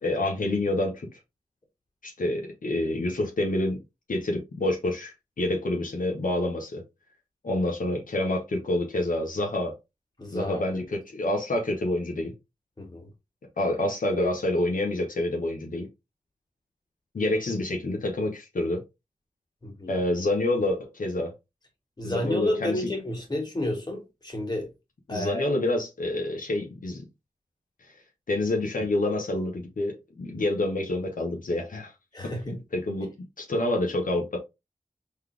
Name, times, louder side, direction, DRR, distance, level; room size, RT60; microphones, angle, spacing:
voice 1, 0.0-1.2 2.0-3.8 4.1-6.8 7.4-9.7 10.3-12.3 13.6-15.9 17.1-18.8 19.9-21.3 22.0-22.9 25.1-27.0 27.8-27.9 28.3-31.9 32.2-33.1 33.4-34.4, left 1 dB, 85° left, 0.9 m, -27 dB
voice 2, 10.2-10.8 12.8-13.1 19.6-19.9 22.0-24.7 25.1-25.5 32.1-32.6, left 1 dB, 30° left, 2.0 m, -31 dB
3.9 x 3.3 x 3.3 m
wide cardioid pair, 85°, 14 cm